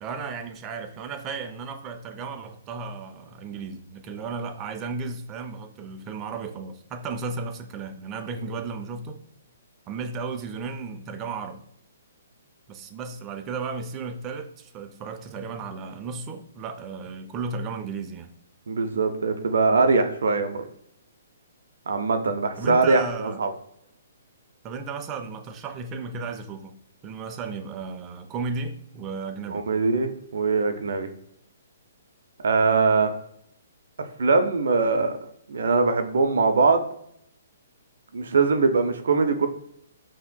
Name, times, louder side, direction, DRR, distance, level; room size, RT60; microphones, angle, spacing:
voice 1, 0.0-9.2 9.9-11.6 12.7-18.3 22.6-23.4 24.6-26.8 27.0-29.7, right 4 dB, 25° right, 7 dB, 0.5 m, -34 dB
voice 2, 18.7-20.6 21.9-23.5 29.5-31.1 32.4-33.1 34.2-35.2 35.5-36.9 38.1-39.5, right 4 dB, 70° right, 8 dB, 0.5 m, -22 dB
5.6 x 2.8 x 2.2 m, 0.71 s
hypercardioid pair, 135°, 0 cm